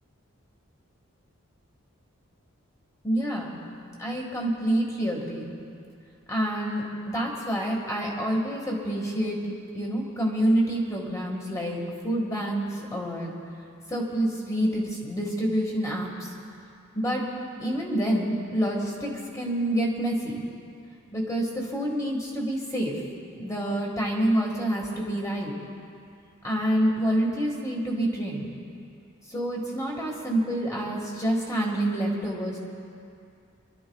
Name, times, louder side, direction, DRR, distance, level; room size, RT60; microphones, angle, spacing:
voice 1, 3.0-3.6 4.0-5.5 6.3-11.8 12.0-13.4 13.9-16.3 16.9-17.3 17.6-20.4 21.1-23.0 23.4-25.5 26.4-28.5 29.3-32.6, right 1 dB, 15° left, -2 dB, 1.8 m, -27 dB
27.5 x 12.5 x 2.4 m, 2.5 s
head